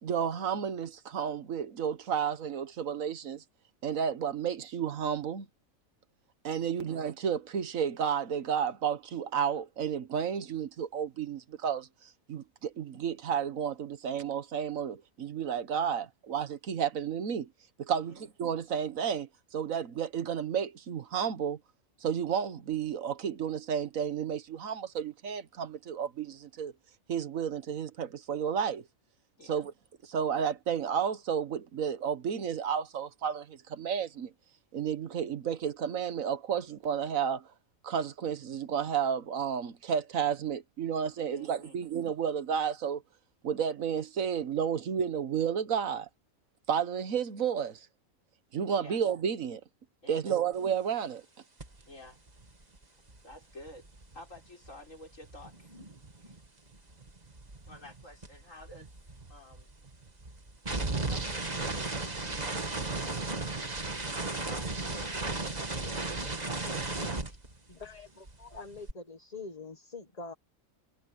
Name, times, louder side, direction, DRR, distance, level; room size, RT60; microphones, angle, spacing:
voice 1, 0.0-3.4 3.8-5.5 6.4-11.9 12.3-17.5 17.8-21.6 22.0-26.7 27.1-28.8 29.5-29.7 30.0-34.3 34.7-37.5 37.8-43.0 43.4-46.1 46.7-47.9 48.5-49.6 50.1-51.2, right 7 dB, 90° right, 1.6 m, -32 dB
voice 2, 17.9-18.2 29.4-29.6 41.2-41.8 48.8-49.0 50.0-50.4 51.9-52.2 53.2-53.9 54.1-55.8 56.2-56.4 57.6-58.9 59.3-59.7 61.0-66.8 67.2-67.4, left 1 dB, 75° left, 6.7 m, -52 dB
sound 1, 51.6-51.8 52.1-56.5 56.7-68.0 68.3-68.9, right 3 dB, 30° right, 2.0 m, -36 dB
voice 3, 67.7-70.3, left 4 dB, 30° left, 1.5 m, -44 dB
omnidirectional pair, 1.4 m